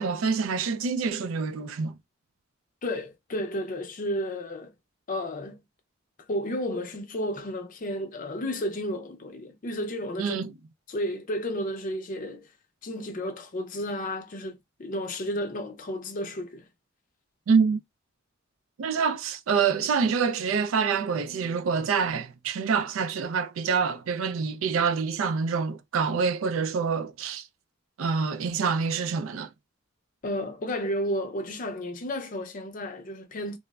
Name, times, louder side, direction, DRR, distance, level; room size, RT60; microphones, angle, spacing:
voice 1, 0.0-1.9 10.2-10.5 17.5-17.8 18.8-27.5 28.0-29.5, right 5 dB, 85° right, 0.4 m, -26 dB
voice 2, 2.8-4.7 5.1-5.6 6.3-10.4 10.9-12.5 12.8-16.7 30.2-33.6, equal, 45° left, 0.5 m, -32 dB
3.2 x 2.0 x 2.3 m
head